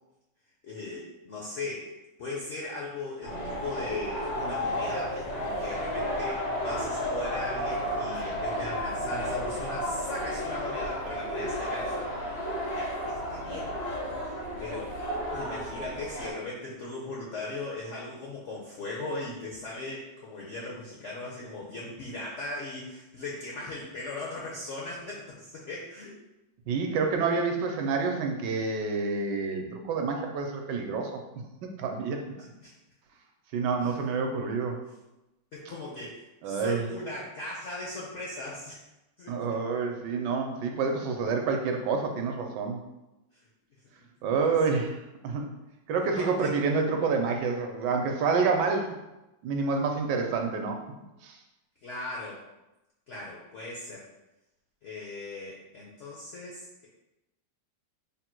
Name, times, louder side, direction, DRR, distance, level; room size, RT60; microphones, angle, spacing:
voice 1, 0.6-1.9 2.2-12.1 12.7-13.7 14.2-15.0 15.3-26.1 32.6-32.7 33.8-34.0 35.5-38.8 39.2-39.6 44.5-44.8 46.2-46.5 51.8-52.4 53.1-54.1 54.8-56.9, left 2 dB, 70° left, -5 dB, 0.7 m, -38 dB
sound 1, 3.2-16.3, equal, 90° left, 1.6 m, -32 dB
voice 2, 26.7-31.1 31.8-32.2 33.5-34.8 36.4-36.8 39.3-42.8 44.2-44.9 45.2-45.5 45.9-49.0 49.4-50.8 51.2-51.4, right 4 dB, 75° right, 3 dB, 1.2 m, -28 dB
3.6 x 2.2 x 4.3 m, 0.96 s
omnidirectional pair, 2.0 m